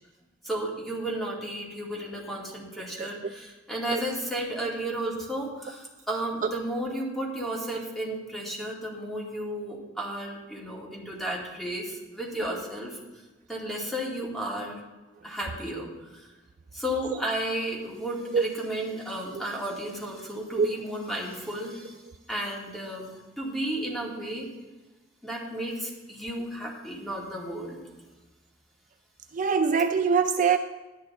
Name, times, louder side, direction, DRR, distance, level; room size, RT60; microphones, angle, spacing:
voice 1, 0.4-13.0 13.5-14.8 15.2-16.3 16.7-22.0 22.3-23.1 23.4-24.5 25.2-27.8, right 1 dB, ahead, -4 dB, 2.4 m, -33 dB
voice 2, 29.3-30.6, right 6 dB, 40° right, 8 dB, 0.4 m, -23 dB
12.0 x 10.5 x 3.8 m, 1.2 s
head